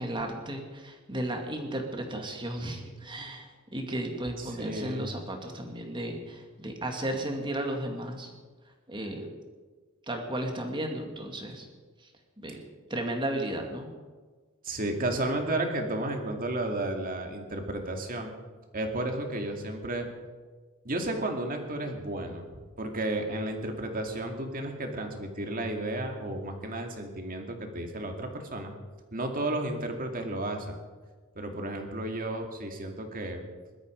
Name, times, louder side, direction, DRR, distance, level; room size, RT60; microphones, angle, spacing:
voice 1, 0.0-8.3 8.9-9.3 10.1-11.7 12.0-12.1 12.4-12.6 12.9-13.9, right 1 dB, 20° right, 3 dB, 2.2 m, -34 dB
voice 2, 4.4-5.2 14.6-18.3 18.7-20.1 20.8-28.7 29.1-30.8 31.4-33.4, right 1 dB, 40° right, 3 dB, 2.2 m, -33 dB
20.5 x 12.5 x 5.1 m, 1.4 s
head